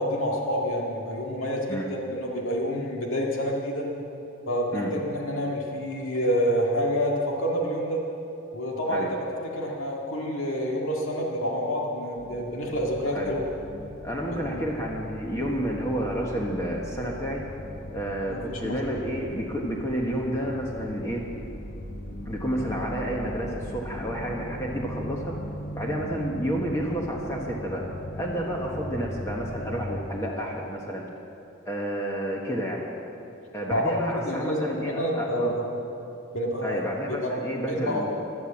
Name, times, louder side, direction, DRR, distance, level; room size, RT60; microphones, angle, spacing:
voice 1, 0.0-3.9 4.5-8.0 8.5-9.1 9.5-13.4 14.3-14.6 18.3-18.7 33.7-33.8 34.2-35.7 36.3-36.8 37.1-37.3 37.7-38.1, equal, 75° left, -1 dB, 2.1 m, -28 dB
sound 1, 12.2-30.0, equal, 45° left, 1.3 m, -39 dB
voice 2, 14.0-17.4 17.9-21.2 22.2-25.3 25.7-27.9 28.2-31.1 31.6-32.9 33.5-35.5 36.6-38.2, equal, 15° left, -2 dB, 1.3 m, -30 dB
16.5 x 12.0 x 7.3 m, 2.9 s
head